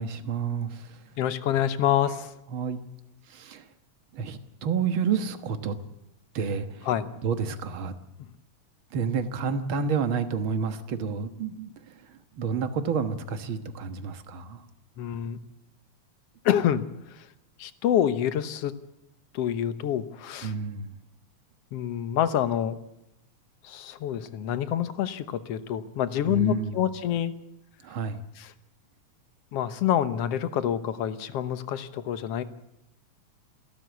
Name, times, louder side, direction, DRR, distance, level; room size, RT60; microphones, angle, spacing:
voice 1, 0.0-1.0 2.5-2.8 3.3-3.7 4.1-5.8 6.3-6.9 7.2-7.9 8.9-14.6 20.4-20.9 26.3-26.8 27.8-28.2, right 6 dB, 50° right, 9 dB, 1.8 m, -30 dB
voice 2, 1.2-2.3 6.9-7.1 15.0-15.4 16.5-17.3 17.6-18.7 19.3-20.5 21.7-22.8 23.6-27.3 28.4-28.5 29.5-32.4, left 10 dB, 65° left, 12 dB, 1.9 m, -27 dB
27.5 x 13.0 x 8.2 m, 0.86 s
omnidirectional pair, 3.3 m